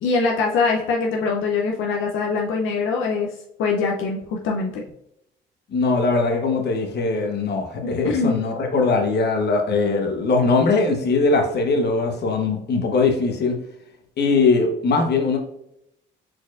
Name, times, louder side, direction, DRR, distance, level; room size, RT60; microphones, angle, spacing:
voice 1, 0.0-4.8 8.0-8.3, left 4 dB, 85° left, 0 dB, 0.6 m, -23 dB
voice 2, 5.7-13.6 14.2-15.4, left 3 dB, 55° left, 3 dB, 1.0 m, -21 dB
4.5 x 4.3 x 2.4 m, 0.80 s
cardioid pair, 90°, 20 cm